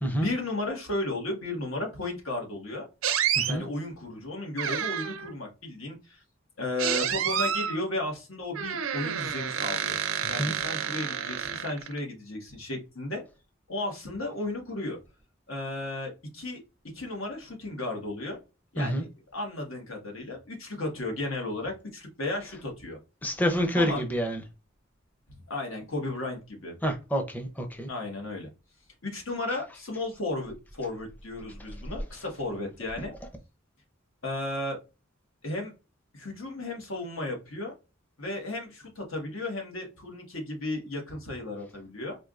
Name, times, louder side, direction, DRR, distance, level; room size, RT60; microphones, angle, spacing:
voice 1, 0.1-2.9 3.5-6.2 6.6-10.0 10.3-13.2 13.7-15.0 15.5-16.6 16.9-18.4 18.7-23.0 23.7-24.1 25.3-26.7 27.9-28.5 29.0-33.1 34.2-34.8 35.4-35.7 36.1-37.7 38.2-42.2, left 2 dB, 85° left, 1.5 m, -34 dB
sound 1, 3.0-3.5 4.6-5.3 6.8-7.8 8.5-12.0, right 8 dB, 90° right, 0.6 m, -29 dB
voice 2, 23.2-24.4 26.8-27.9, equal, 10° left, 0.6 m, -28 dB
4.4 x 2.6 x 2.4 m
head